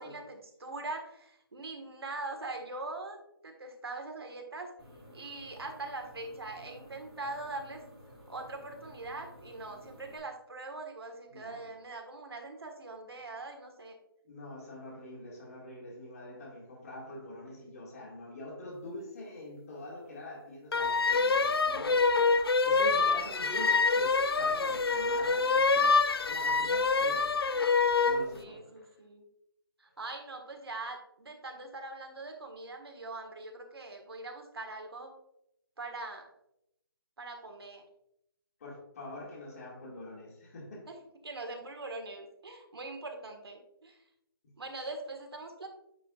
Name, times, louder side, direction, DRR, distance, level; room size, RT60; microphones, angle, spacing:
voice 1, 0.0-3.2 3.4-4.7 5.1-7.8 8.3-14.0 28.3-29.3 29.8-35.1 35.8-36.3 37.2-37.8 40.9-41.0 41.2-44.0 44.6-45.7, right 2 dB, 80° right, 4 dB, 1.7 m, -42 dB
sound 1, 4.8-10.2, equal, ahead, 1.6 m, -53 dB
voice 2, 11.3-11.7 14.2-26.0 26.2-27.4 28.0-29.0 38.6-40.9, left 1 dB, 40° left, -3 dB, 2.1 m, -45 dB
sound 2, 20.7-28.2, left 4 dB, 75° left, 0.6 m, -26 dB
9.2 x 4.6 x 2.4 m, 0.79 s
hypercardioid pair, 165°, 13 cm